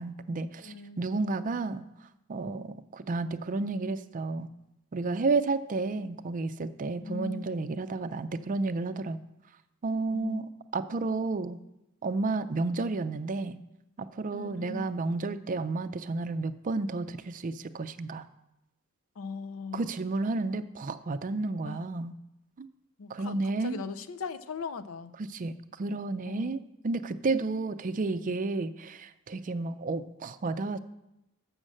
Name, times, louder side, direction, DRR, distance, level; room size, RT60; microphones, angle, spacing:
voice 1, 0.0-1.8 2.3-4.5 4.9-9.2 9.8-11.6 12.0-13.6 14.0-18.2 19.7-22.1 22.6-22.7 23.1-23.8 25.2-30.8, right 3 dB, 40° right, 11 dB, 0.4 m, -31 dB
voice 2, 0.6-1.0 7.0-7.4 10.1-10.5 14.3-14.9 19.2-19.9 21.6-21.8 23.0-25.1 26.3-26.5, left 4 dB, 75° left, 14 dB, 0.5 m, -39 dB
7.6 x 6.3 x 6.4 m, 0.90 s
head